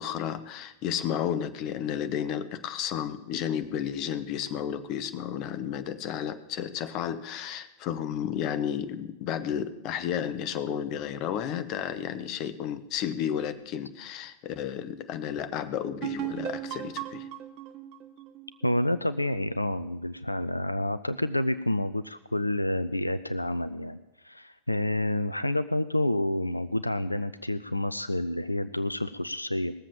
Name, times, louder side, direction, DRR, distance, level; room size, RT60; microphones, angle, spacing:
voice 1, 0.0-17.3, left 9 dB, 40° left, 12 dB, 0.9 m, -32 dB
sound 1, 16.0-19.6, right 11 dB, 45° right, 0.8 m, -37 dB
voice 2, 18.6-29.7, left 1 dB, 85° left, 14 dB, 0.4 m, -29 dB
18.5 x 7.4 x 7.2 m, 0.94 s
figure-of-eight pair, 90°, 0 cm